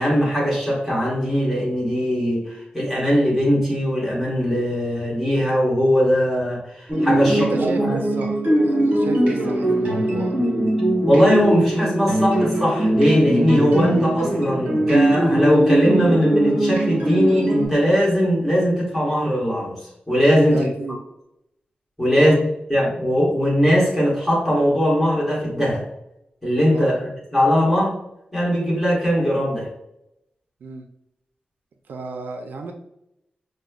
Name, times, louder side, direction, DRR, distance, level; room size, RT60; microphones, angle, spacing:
voice 1, 0.0-8.0 11.1-19.8 20.1-20.7 22.0-25.8 26.4-28.0 28.3-29.7, equal, ahead, -6 dB, 1.2 m, -20 dB
sound 1, 6.9-17.7, right 1 dB, 50° right, 1.0 m, -21 dB
voice 2, 7.3-8.4 8.6-10.3 20.5-21.0 22.2-22.4 26.7-27.0 30.6-30.9 31.9-32.7, right 3 dB, 80° right, 4 dB, 0.4 m, -32 dB
4.9 x 2.1 x 2.3 m, 0.81 s
wide cardioid pair, 180°, 3 cm